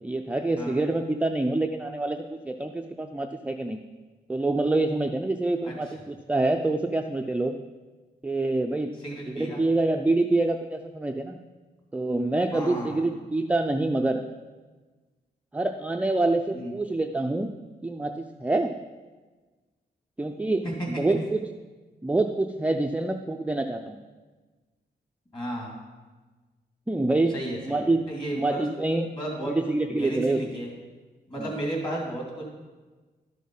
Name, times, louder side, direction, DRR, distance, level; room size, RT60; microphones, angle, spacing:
voice 1, 0.0-3.8 4.3-7.6 8.2-8.9 9.3-11.4 11.9-14.2 15.5-17.5 17.8-18.7 20.2-21.5 22.0-24.0 26.9-27.4 27.6-28.1 28.3-29.1 29.4-30.4 31.4-31.5, right 2 dB, 10° right, 4 dB, 0.3 m, -26 dB
voice 2, 9.0-9.6 12.5-13.1 16.5-16.7 20.6-20.7 25.3-25.8 27.3-27.8 28.1-28.6 29.1-29.6 29.9-30.7 31.3-32.5, right 1 dB, 30° left, -1 dB, 2.7 m, -33 dB
12.0 x 6.3 x 5.4 m, 1.3 s
wide cardioid pair, 150°, 17 cm